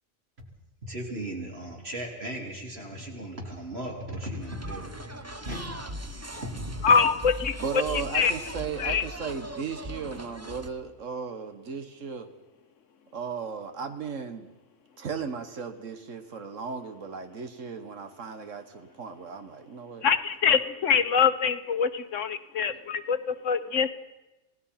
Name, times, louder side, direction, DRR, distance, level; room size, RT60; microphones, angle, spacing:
voice 1, 0.8-5.2 5.4-6.1, right 1 dB, 55° right, -1 dB, 4.6 m, -37 dB
sound 1, 4.4-10.7, right 1 dB, 15° right, 0.9 m, -39 dB
voice 2, 6.8-8.3 8.8-9.0 20.0-23.9, left 6 dB, 80° left, 11 dB, 1.4 m, -24 dB
voice 3, 7.6-12.3 13.1-14.5 15.0-20.0, right 6 dB, 85° right, 8 dB, 1.7 m, -36 dB
27.5 x 18.0 x 5.8 m, 1.0 s
omnidirectional pair, 1.3 m